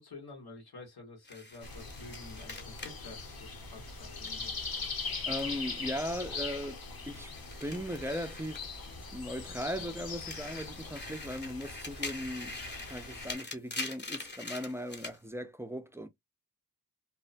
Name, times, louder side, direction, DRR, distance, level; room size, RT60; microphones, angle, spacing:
voice 1, 0.0-4.6, left 3 dB, 90° left, 1.3 m, -49 dB
sound 1, 1.3-5.8 6.1-9.1 9.5-15.2, left 2 dB, 30° left, 0.7 m, -44 dB
sound 2, 1.6-13.3, left 4 dB, 70° left, 0.9 m, -41 dB
voice 2, 5.3-7.3 7.6-8.7 9.1-12.6 12.9-16.1, equal, 10° right, 0.3 m, -38 dB
2.8 x 2.1 x 2.5 m
wide cardioid pair, 120°, 37 cm